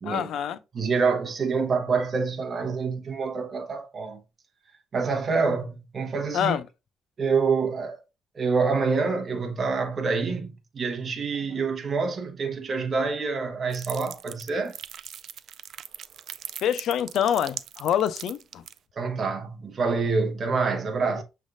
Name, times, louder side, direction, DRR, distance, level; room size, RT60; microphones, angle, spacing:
voice 1, 0.0-0.6 6.3-6.6 16.6-18.6, left 9 dB, 65° left, 0.4 m, -26 dB
voice 2, 0.7-4.2 4.9-6.6 7.2-8.0 8.3-14.8 18.9-21.2, right 4 dB, 35° right, 1.0 m, -26 dB
sound 1, 13.7-18.8, right 9 dB, 55° right, 0.3 m, -39 dB
6.3 x 3.3 x 2.5 m
cardioid pair, 145°, 0 cm